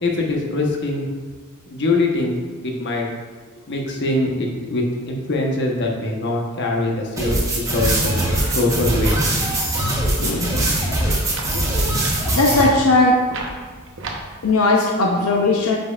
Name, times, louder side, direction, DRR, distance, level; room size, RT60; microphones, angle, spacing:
voice 1, 0.0-1.1 1.7-2.3 2.6-3.1 3.7-9.2, left 2 dB, 55° left, 0 dB, 1.1 m, -23 dB
sound 1, 7.2-12.6, right 1 dB, 15° right, 1.1 m, -21 dB
sound 2, 8.4-14.5, right 2 dB, 60° right, 0.9 m, -35 dB
voice 2, 10.2-10.7 11.5-11.6 12.3-13.2 14.4-15.8, left 2 dB, 90° left, 0 dB, 0.7 m, -18 dB
9.0 x 5.3 x 2.4 m, 1.4 s
head